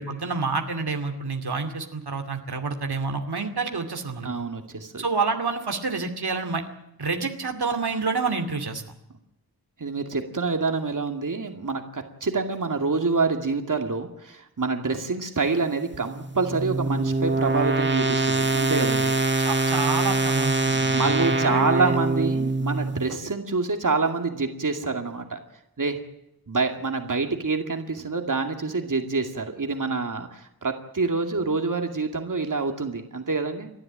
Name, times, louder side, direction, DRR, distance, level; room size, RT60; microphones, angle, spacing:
voice 1, 0.0-4.3 5.0-6.6 7.0-8.8 19.4-22.0, right 4 dB, 90° right, 4 dB, 2.5 m, -28 dB
voice 2, 4.2-5.0 9.8-19.1 20.6-25.4 25.8-26.0 26.5-33.7, right 4 dB, 55° right, 5 dB, 2.3 m, -27 dB
sound 1, 15.9-23.1, right 2 dB, 30° right, 1.6 m, -24 dB
29.5 x 12.0 x 9.0 m, 0.82 s
wide cardioid pair, 75°, 38 cm